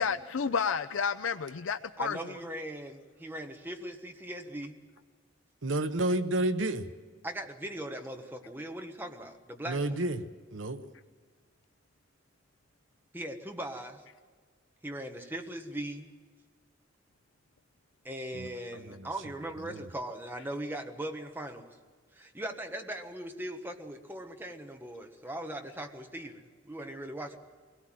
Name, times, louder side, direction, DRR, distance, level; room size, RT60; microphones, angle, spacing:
voice 1, 0.0-2.2, left 6 dB, 80° left, 11 dB, 0.5 m, -30 dB
voice 2, 2.0-4.8 7.2-10.0 13.1-14.0 14.8-16.1 18.0-21.7 22.1-27.4, right 1 dB, 10° right, 4 dB, 1.4 m, -39 dB
voice 3, 5.6-6.9 9.6-10.2 10.5-10.8 18.3-19.1 19.7-19.9, right 1 dB, 70° right, 10 dB, 0.9 m, -31 dB
22.5 x 17.5 x 7.6 m, 1.5 s
head